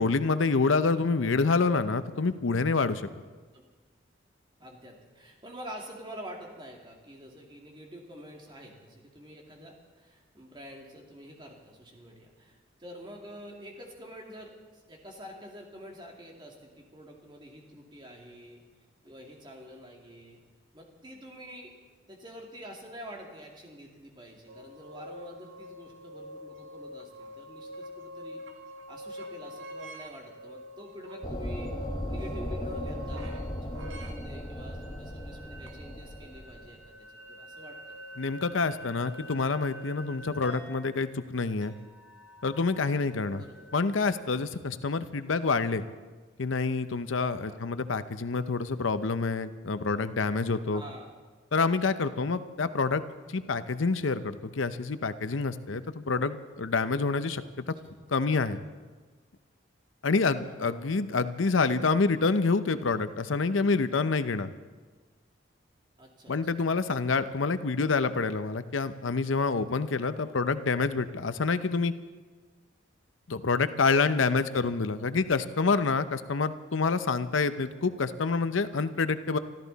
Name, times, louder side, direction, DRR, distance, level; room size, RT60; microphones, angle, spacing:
voice 1, 0.0-3.1 38.2-41.7 42.4-43.4 43.7-45.8 46.4-50.8 51.5-53.0 53.3-57.4 58.1-58.6 60.0-64.5 66.3-71.9 73.3-79.4, left 4 dB, 90° left, 12 dB, 0.7 m, -27 dB
voice 2, 4.6-18.6 19.0-20.4 20.7-21.7 22.1-28.4 28.9-31.7 32.1-37.8 38.2-38.3 43.3-43.7 45.1-45.2 47.4-47.6 50.7-51.1 57.8-57.9 60.4-61.0 66.0-66.5 70.2-70.3 74.5-74.8, equal, 25° right, 0 dB, 2.4 m, -47 dB
sound 1, 24.5-43.8, equal, 85° right, 1.7 m, -46 dB
sound 2, 31.2-36.9, equal, 20° left, 1.1 m, -37 dB
25.5 x 13.5 x 4.1 m, 1.3 s
head